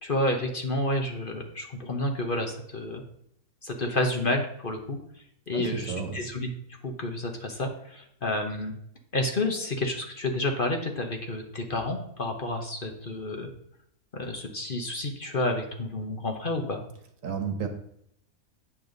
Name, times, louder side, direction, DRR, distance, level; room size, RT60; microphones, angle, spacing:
voice 1, 0.0-3.0 3.6-5.0 5.5-6.5 6.8-8.7 9.1-13.5 14.1-16.8, left 1 dB, 40° left, 3 dB, 1.2 m, -30 dB
voice 2, 5.5-6.2 17.2-17.7, right 6 dB, 65° right, 6 dB, 1.5 m, -31 dB
8.7 x 7.0 x 4.0 m, 0.72 s
omnidirectional pair, 1.5 m